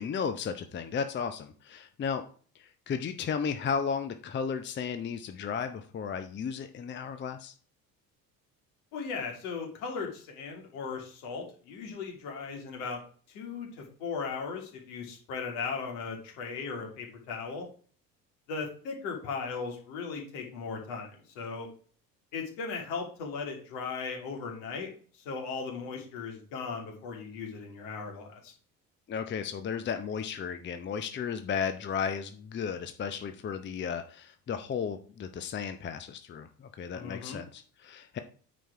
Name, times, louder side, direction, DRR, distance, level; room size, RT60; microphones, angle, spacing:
voice 1, 0.0-2.2 2.5-7.5 29.1-38.2, left 6 dB, 25° left, 9 dB, 0.7 m, -34 dB
voice 2, 8.9-13.0 13.3-17.7 18.5-21.7 22.3-28.5 36.9-37.4, left 5 dB, 60° left, 1 dB, 2.7 m, -37 dB
9.1 x 4.4 x 4.6 m, 0.43 s
figure-of-eight pair, 65°, 48 cm